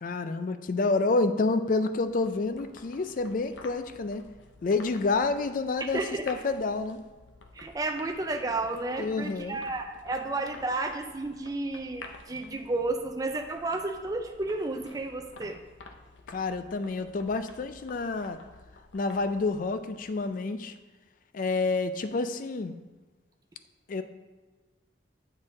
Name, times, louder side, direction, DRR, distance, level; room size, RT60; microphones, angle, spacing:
voice 1, 0.0-4.2 4.6-7.0 9.0-9.6 16.3-18.4 18.9-20.7 21.3-22.8 23.9-24.0, left 3 dB, 45° left, 10 dB, 0.4 m, -28 dB
sound 1, 1.5-20.5, left 3 dB, 80° left, 0.7 m, -51 dB
voice 2, 5.9-6.2 7.5-15.6, right 2 dB, 20° right, 4 dB, 0.4 m, -32 dB
8.0 x 4.2 x 3.8 m, 1.3 s
head